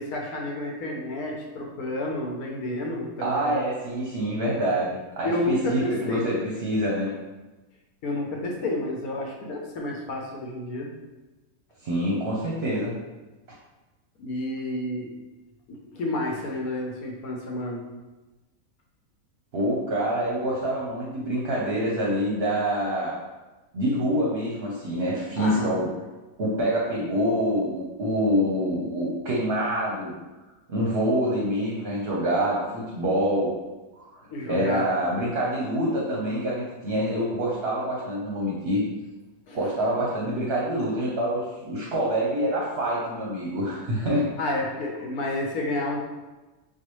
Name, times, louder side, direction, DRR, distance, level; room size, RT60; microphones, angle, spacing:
voice 1, 0.0-3.5 5.2-6.2 8.0-10.9 14.2-15.1 15.7-17.8 25.4-25.8 34.3-34.9 39.5-39.7 44.4-46.0, left 1 dB, 75° left, 0 dB, 1.2 m, -30 dB
voice 2, 3.2-7.1 11.8-12.9 19.5-23.2 23.7-25.9 26.4-30.1 30.7-33.5 34.0-34.1 34.5-38.8 39.5-44.3, equal, 55° right, -5 dB, 0.8 m, -26 dB
4.5 x 2.3 x 3.0 m, 1.1 s
omnidirectional pair, 1.6 m